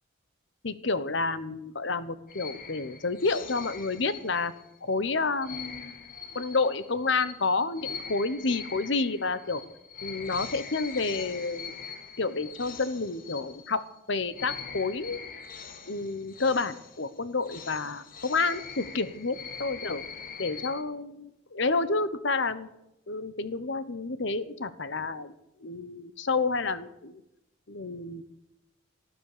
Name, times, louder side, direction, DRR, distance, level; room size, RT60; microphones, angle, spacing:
voice 1, 0.6-4.5 4.8-6.0 6.3-9.6 10.0-11.8 12.2-15.2 15.9-20.0 20.4-22.7 23.1-25.3 25.6-27.2 27.7-28.2, left 3 dB, 60° left, 14 dB, 1.0 m, -30 dB
sound 1, 2.3-4.8 5.4-14.0 14.3-20.8, left 6 dB, 40° left, 1.4 m, -43 dB
18.5 x 10.0 x 6.8 m, 0.88 s
head